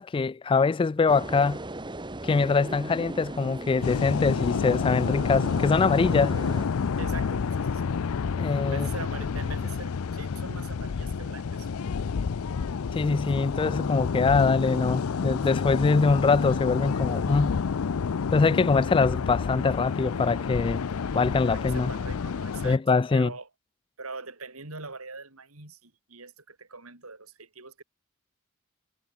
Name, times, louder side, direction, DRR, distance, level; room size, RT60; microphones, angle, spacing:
voice 1, 0.0-1.6 2.2-6.3 8.4-8.9 12.9-17.6 18.3-20.8 21.1-21.9 22.6-23.3, left 4 dB, 25° left, 0.3 m, -23 dB
sound 1, 1.1-6.7, right 1 dB, 20° right, 1.7 m, -38 dB
sound 2, 3.8-22.8, left 5 dB, 80° left, 0.5 m, -29 dB
voice 2, 7.0-7.9 8.6-11.7 21.5-22.8 23.1-23.5 24.0-27.8, right 4 dB, 85° right, 5.5 m, -42 dB
head